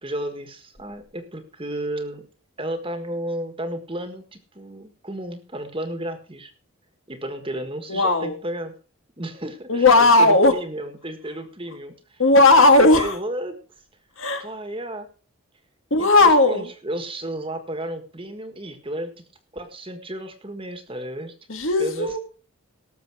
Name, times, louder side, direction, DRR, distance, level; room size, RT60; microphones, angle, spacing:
voice 1, 0.0-2.2 2.6-6.5 7.1-8.7 9.2-12.2 12.6-13.6 14.4-15.1 16.0-19.1 19.5-21.3 21.8-22.2, right 1 dB, 25° right, 8 dB, 1.6 m, -33 dB
voice 2, 7.9-8.4 9.7-10.5 12.2-13.2 14.2-14.5 15.9-16.7 21.5-22.2, left 2 dB, 60° left, 7 dB, 1.7 m, -16 dB
18.0 x 7.1 x 4.8 m, 0.38 s
head